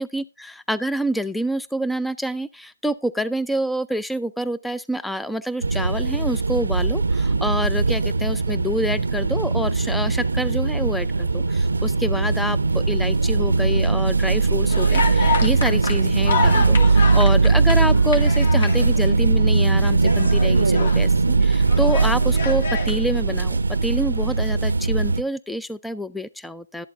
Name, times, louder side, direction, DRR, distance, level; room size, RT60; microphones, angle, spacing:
voice 1, 0.0-26.9, equal, ahead, 15 dB, 0.4 m, -27 dB
sound 1, 5.6-25.2, right 3 dB, 80° right, 0.6 m, -20 dB
sound 2, 14.7-19.2 19.7-21.0 21.5-23.0, left 4 dB, 55° left, 2.3 m, -28 dB
12.0 x 7.6 x 3.6 m, 0.27 s
figure-of-eight pair, 145°, 0 cm